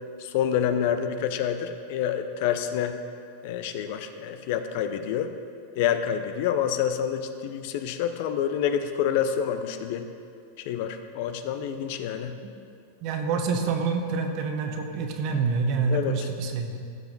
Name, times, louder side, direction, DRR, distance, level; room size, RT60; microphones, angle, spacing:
voice 1, 0.2-3.0 3.4-5.3 5.8-10.1 10.6-12.4 15.9-16.3, left 9 dB, 60° left, 9 dB, 0.7 m, -27 dB
voice 2, 13.0-16.8, right 4 dB, 50° right, 5 dB, 1.2 m, -27 dB
15.0 x 5.7 x 4.1 m, 2.4 s
hypercardioid pair, 110°, 0 cm